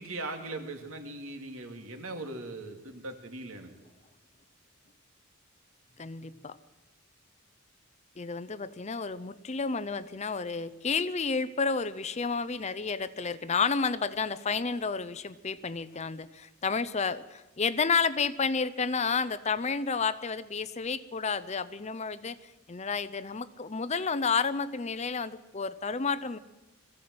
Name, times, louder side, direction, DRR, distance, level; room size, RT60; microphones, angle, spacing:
voice 1, 0.0-3.7, right 2 dB, 75° right, 4 dB, 2.7 m, -39 dB
voice 2, 6.0-6.6 8.2-26.4, left 5 dB, 30° left, 15 dB, 0.6 m, -31 dB
21.5 x 15.5 x 7.8 m, 1.1 s
head